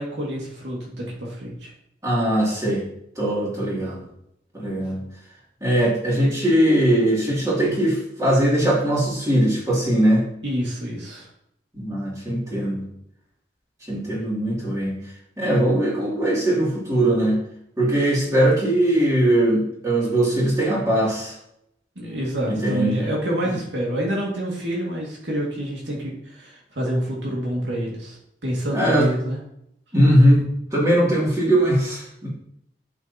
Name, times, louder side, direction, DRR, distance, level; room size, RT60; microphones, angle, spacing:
voice 1, 0.0-1.7 10.4-11.3 22.0-28.2 28.4-29.4, equal, 85° right, -3 dB, 2.3 m, -27 dB
voice 2, 2.0-2.8 3.2-4.0 4.5-5.0 5.6-10.2 11.7-12.8 13.9-15.0 15.4-17.4 17.8-21.3 22.5-23.1 28.7-29.1 29.9-32.3, right 1 dB, 20° right, -6 dB, 2.8 m, -20 dB
8.5 x 7.2 x 2.9 m, 0.76 s
head